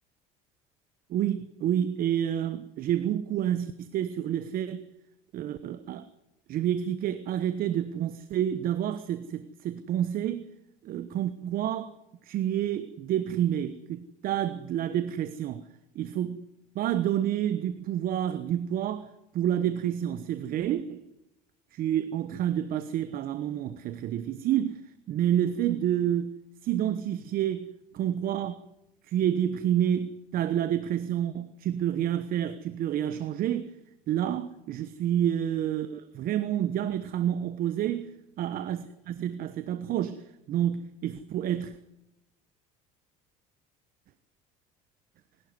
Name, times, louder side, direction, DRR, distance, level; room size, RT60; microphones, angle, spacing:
voice 1, 1.1-4.9 5.3-6.1 6.5-10.5 10.8-11.9 12.2-15.7 15.9-16.5 16.7-21.0 21.7-26.3 26.6-27.7 27.9-28.6 29.0-33.7 34.1-41.8, right 10 dB, 55° right, 1.1 m, -29 dB
26.5 x 12.5 x 9.7 m
supercardioid pair, 85°, 17 cm